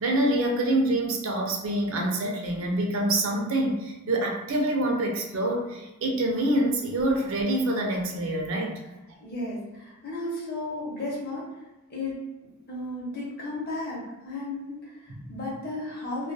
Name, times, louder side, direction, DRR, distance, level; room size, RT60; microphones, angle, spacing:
voice 1, 0.0-8.7, right 1 dB, 60° right, 0 dB, 0.4 m, -26 dB
voice 2, 9.2-11.6 11.9-12.2 12.7-16.3, left 2 dB, 45° left, -5 dB, 0.8 m, -34 dB
2.3 x 2.2 x 2.6 m, 1.1 s
head